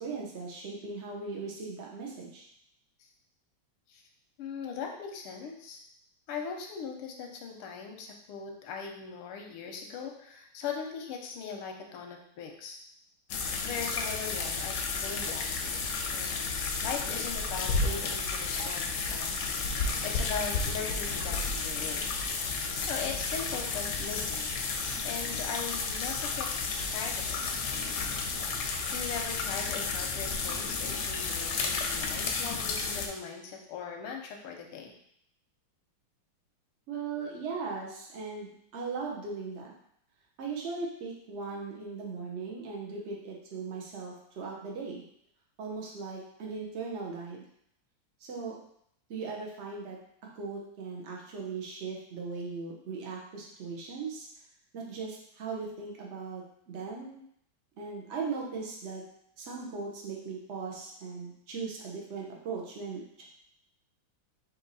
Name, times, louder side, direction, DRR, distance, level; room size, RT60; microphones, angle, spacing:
voice 1, 0.0-2.4 36.9-39.7 40.4-45.0 45.6-47.4 48.2-48.6 49.1-50.0 50.3-54.3 54.7-57.2 57.8-59.0 59.4-63.2, right 4 dB, 85° right, -2 dB, 0.6 m, -38 dB
voice 2, 4.4-5.8 6.3-12.8 13.6-16.4 16.8-19.6 20.0-22.2 22.9-26.5 26.9-27.4 28.9-34.9, left 6 dB, 90° left, 2 dB, 1.6 m, -40 dB
sound 1, 13.3-33.1, left 4 dB, 75° left, 1.0 m, -32 dB
4.5 x 2.8 x 4.0 m, 0.70 s
omnidirectional pair, 2.4 m